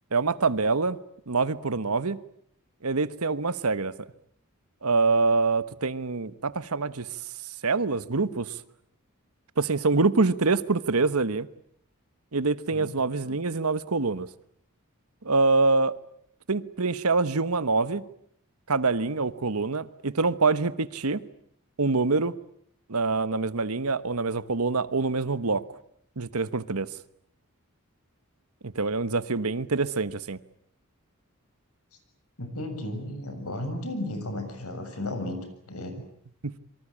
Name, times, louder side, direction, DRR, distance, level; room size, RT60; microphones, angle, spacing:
voice 1, 0.1-1.0 1.3-2.2 2.8-3.9 4.8-7.1 7.6-8.6 9.6-11.5 12.3-14.3 15.2-16.0 16.5-18.0 18.7-21.2 21.8-22.3 22.9-25.6 26.2-26.9 28.6-30.4 36.4-36.6, right 3 dB, 80° right, 1.2 m, -25 dB
voice 2, 32.4-36.0, left 1 dB, 80° left, 7.2 m, -34 dB
27.0 x 24.5 x 8.6 m
head